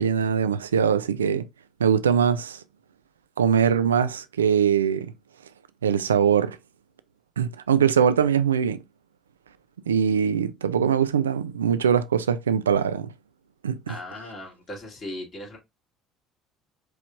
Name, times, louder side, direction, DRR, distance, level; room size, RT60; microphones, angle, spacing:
voice 1, 0.0-1.5 1.8-2.6 3.4-5.1 5.8-6.6 7.4-8.8 9.9-13.1 13.6-13.9, right 7 dB, 85° right, 0.3 m, -22 dB
voice 2, 13.9-15.6, left 1 dB, 40° left, 2.3 m, -38 dB
4.6 x 3.0 x 2.5 m
figure-of-eight pair, 60°, 0 cm